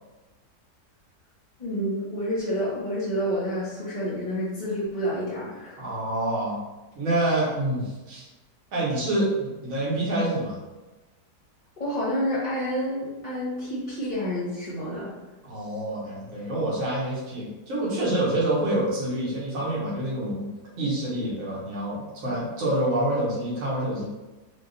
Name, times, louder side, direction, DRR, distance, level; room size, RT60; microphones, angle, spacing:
voice 1, 1.6-5.8 11.8-15.1, equal, 35° left, -7 dB, 0.9 m, -29 dB
voice 2, 5.8-6.6 6.9-8.3 8.7-10.6 15.4-20.5 20.8-24.1, right 1 dB, 55° right, -7 dB, 1.5 m, -27 dB
3.6 x 2.9 x 3.9 m, 1.1 s
omnidirectional pair, 1.7 m